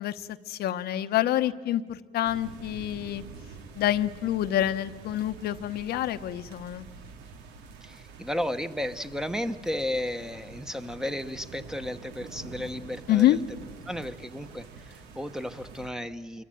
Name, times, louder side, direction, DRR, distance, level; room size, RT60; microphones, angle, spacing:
voice 1, 0.0-3.2 3.7-6.9 13.1-13.4, left 13 dB, 70° left, 9 dB, 1.0 m, -27 dB
sound 1, 2.2-15.9, right 4 dB, 90° right, 2.5 m, -46 dB
voice 2, 7.8-13.4 13.9-16.4, left 1 dB, 5° right, 10 dB, 1.1 m, -34 dB
26.5 x 23.5 x 9.2 m, 1.3 s
cardioid pair, 110°, 17 cm